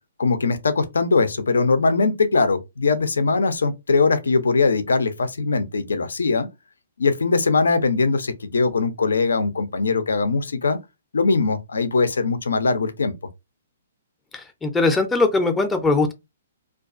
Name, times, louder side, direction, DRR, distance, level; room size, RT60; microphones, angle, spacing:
voice 1, 0.2-6.5 7.0-10.8 11.1-13.1, left 4 dB, 80° left, 0.4 m, -21 dB
voice 2, 14.3-16.1, left 3 dB, 10° left, 0.4 m, -20 dB
2.3 x 2.3 x 2.4 m
hypercardioid pair, 130°, 0 cm